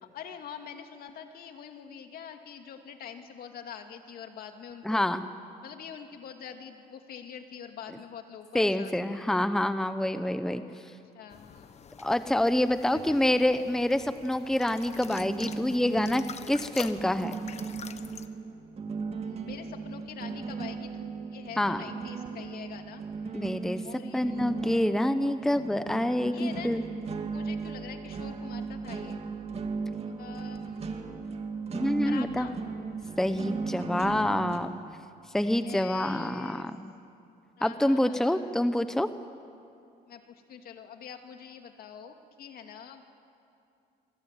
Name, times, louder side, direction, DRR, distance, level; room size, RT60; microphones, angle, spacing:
voice 1, 0.0-5.0 5.6-9.3 10.7-10.8 11.1-12.1 12.9-13.2 19.2-23.6 23.8-24.6 25.2-25.8 26.3-26.9 27.3-29.2 30.0-31.1 31.8-32.6 35.6-36.7 37.6-38.6 40.1-43.0, left 8 dB, 60° left, 5 dB, 2.5 m, -45 dB
voice 2, 4.8-5.2 8.5-10.6 12.0-17.4 21.6-21.8 23.3-23.8 24.1-26.8 31.7-32.5 33.2-34.8 35.3-36.7 37.6-39.1, left 1 dB, 5° left, 10 dB, 0.9 m, -27 dB
sound 1, 11.3-18.3, left 7 dB, 40° left, 1.2 m, -46 dB
sound 2, 15.1-34.6, right 4 dB, 35° right, 2.4 m, -37 dB
25.0 x 22.5 x 9.1 m, 2.5 s
cardioid pair, 110°, 17 cm